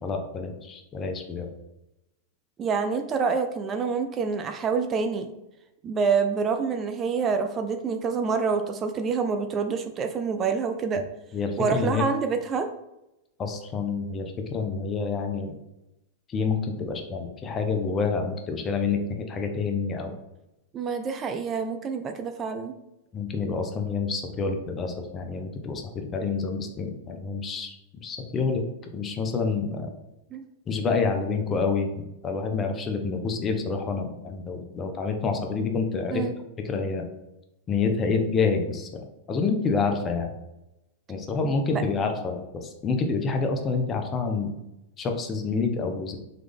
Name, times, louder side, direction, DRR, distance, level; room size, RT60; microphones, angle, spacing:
voice 1, 0.0-1.5 11.3-12.0 13.4-15.5 16.3-20.1 23.1-27.8 28.0-28.6 28.9-29.9 30.7-36.2 36.7-37.1 37.7-40.4 41.1-44.5 45.0-46.2, left 4 dB, 25° left, 4 dB, 0.7 m, -28 dB
voice 2, 2.6-5.3 5.8-11.0 11.6-12.7 20.7-22.7 30.3-30.5 36.1-36.3 41.7-41.8, right 5 dB, 30° right, 7 dB, 0.4 m, -27 dB
3.8 x 3.2 x 3.4 m, 0.93 s
hypercardioid pair, 110°, 0 cm